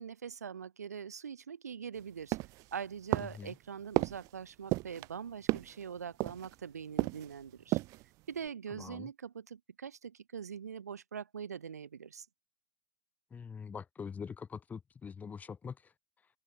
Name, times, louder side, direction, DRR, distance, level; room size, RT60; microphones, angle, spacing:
voice 1, 0.0-2.4 2.7-7.8 8.3-12.3, right 7 dB, 75° right, 3.2 m, -43 dB
sound 1, 2.3-2.7 3.1-3.5 4.0-4.3 4.7-5.1 5.5-5.8 6.2-6.6 7.0-7.3 7.6-8.0 8.4-8.5, right 21 dB, 40° right, 0.5 m, -33 dB
voice 2, 8.8-9.1 13.3-15.7, left 6 dB, 20° left, 1.5 m, -43 dB
figure-of-eight pair, 90°, 9 cm